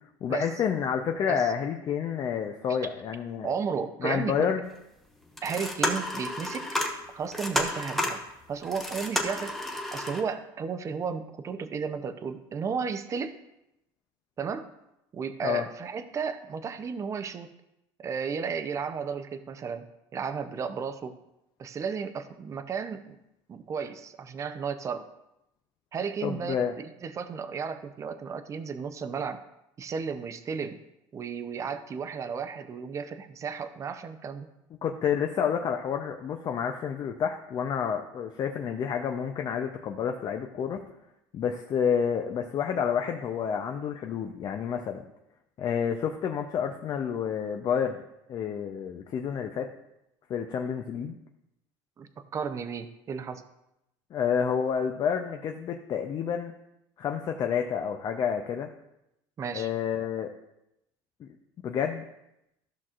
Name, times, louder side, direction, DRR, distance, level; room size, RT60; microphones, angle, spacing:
voice 1, 0.2-3.5 4.0-4.6 15.4-15.7 26.2-26.7 34.8-40.8 41.3-45.0 45.6-48.0 48.3-49.7 50.3-51.2 54.1-56.5 57.0-58.7 59.5-60.3 61.2-61.3 61.6-62.0, left 7 dB, 40° left, 4 dB, 0.6 m, -29 dB
voice 2, 3.4-4.5 5.4-6.6 7.1-8.2 8.5-9.5 9.9-13.4 14.4-14.7 15.1-17.5 18.0-19.9 20.1-21.1 21.6-23.2 23.5-25.1 25.9-29.4 29.8-30.8 31.1-34.5 52.0-53.4 59.4-59.7, right 6 dB, 30° right, 10 dB, 0.6 m, -33 dB
sound 1, 4.6-4.7 5.2-10.2, left 1 dB, ahead, 0.9 m, -31 dB
13.5 x 5.9 x 2.5 m, 0.86 s
cardioid pair, 130°, 11 cm